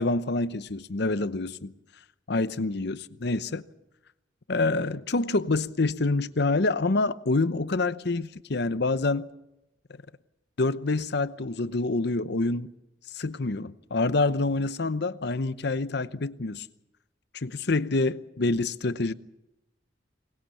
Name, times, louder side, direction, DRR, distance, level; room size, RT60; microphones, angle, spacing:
voice 1, 0.0-1.7 2.3-3.6 4.5-9.3 10.6-12.7 13.1-16.7 17.3-19.1, left 3 dB, 65° left, 0.8 m, -27 dB
23.0 x 20.0 x 7.2 m
head